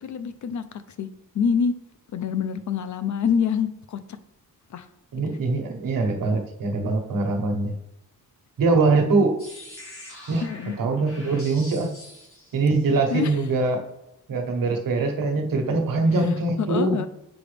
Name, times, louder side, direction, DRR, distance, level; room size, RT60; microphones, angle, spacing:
voice 1, 0.0-0.6 1.0-1.1 1.3-1.7 2.1-4.0 4.7-4.9 10.4-10.8 13.1-13.4 16.6-17.1, left 6 dB, 55° left, 11 dB, 0.6 m, -25 dB
voice 2, 5.1-7.7 8.6-9.3 10.3-10.4 10.8-11.9 12.5-13.8 14.3-17.0, right 3 dB, 70° right, 4 dB, 1.3 m, -22 dB
sound 1, 9.4-13.1, left 1 dB, 40° left, 2.5 m, -44 dB
7.0 x 4.9 x 3.3 m, 0.88 s
wide cardioid pair, 125°, 34 cm